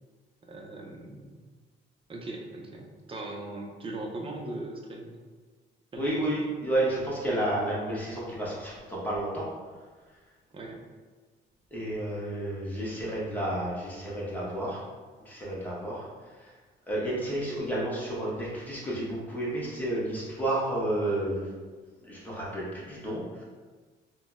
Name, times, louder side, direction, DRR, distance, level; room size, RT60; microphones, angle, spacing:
voice 1, 0.5-1.4 2.1-5.2 5.9-6.4 10.5-10.8 18.2-18.5, right 2 dB, 25° right, 0 dB, 0.5 m, -39 dB
voice 2, 6.0-9.5 11.7-14.8 15.2-16.1 16.4-16.5 16.9-21.5 22.0-23.4, right 1 dB, 10° left, -7 dB, 1.0 m, -31 dB
3.8 x 2.1 x 2.4 m, 1.4 s
cardioid pair, 90°, 20 cm